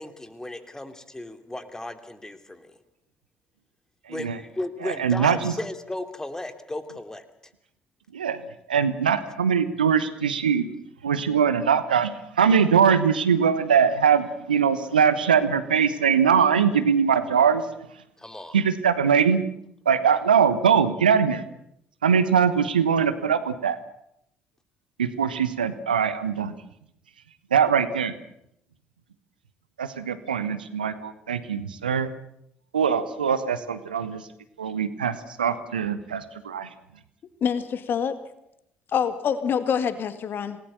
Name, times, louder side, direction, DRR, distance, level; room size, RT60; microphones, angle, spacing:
voice 1, 0.0-2.7 4.1-7.2 18.2-18.6, left 1 dB, 10° left, 9 dB, 2.9 m, -35 dB
voice 2, 4.1-4.4 4.8-5.5 8.1-8.4 8.7-10.7 11.0-17.6 18.5-19.4 19.8-21.4 22.0-23.8 25.0-26.5 27.5-28.1 29.8-32.1 32.7-34.2 34.6-36.7, right 7 dB, 80° right, 12 dB, 1.2 m, -22 dB
voice 3, 37.4-38.1 38.9-40.6, left 7 dB, 45° left, 12 dB, 1.9 m, -25 dB
27.5 x 19.0 x 6.9 m, 0.77 s
figure-of-eight pair, 50°, 5 cm